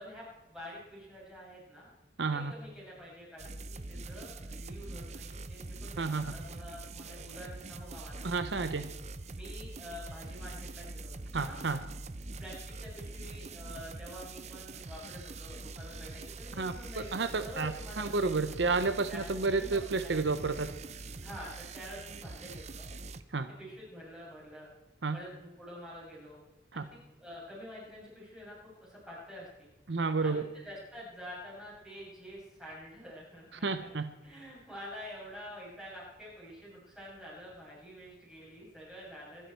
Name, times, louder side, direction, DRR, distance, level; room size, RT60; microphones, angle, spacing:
voice 1, 0.0-1.9 2.3-8.3 9.3-11.1 11.4-11.6 12.4-18.2 19.1-19.2 19.5-20.4 21.2-22.9 23.6-24.7 25.1-26.4 26.7-29.7 30.2-33.9 34.2-39.5, equal, 5° right, -7 dB, 7.1 m, -48 dB
voice 2, 2.2-2.5 6.0-6.2 8.2-8.9 11.3-11.8 16.6-16.7 17.1-17.7 18.0-20.7 23.3-23.5 25.0-25.2 26.7-26.8 29.9-30.4 33.6-34.1, right 4 dB, 70° right, 11 dB, 0.8 m, -30 dB
sound 1, 3.4-23.2, right 3 dB, 35° right, 0.6 m, -44 dB
24.5 x 11.0 x 4.6 m, 0.97 s
head